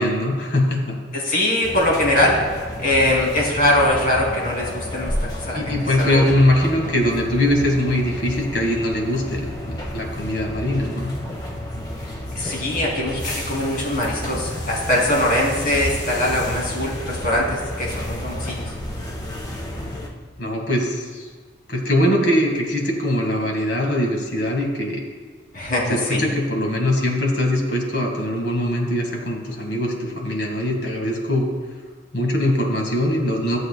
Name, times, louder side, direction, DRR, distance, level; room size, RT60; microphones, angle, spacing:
voice 1, 0.0-1.0 5.5-11.1 20.4-21.3 21.7-25.0 25.9-31.5 32.1-33.6, left 1 dB, 65° left, 0 dB, 1.8 m, -22 dB
voice 2, 1.1-2.4 2.8-5.1 5.4-6.2 12.3-18.6 25.5-26.3, left 1 dB, 45° left, -3 dB, 2.7 m, -22 dB
sound 1, 1.6-20.1, left 1 dB, 20° left, 1.1 m, -31 dB
15.0 x 7.7 x 2.2 m, 1.4 s
head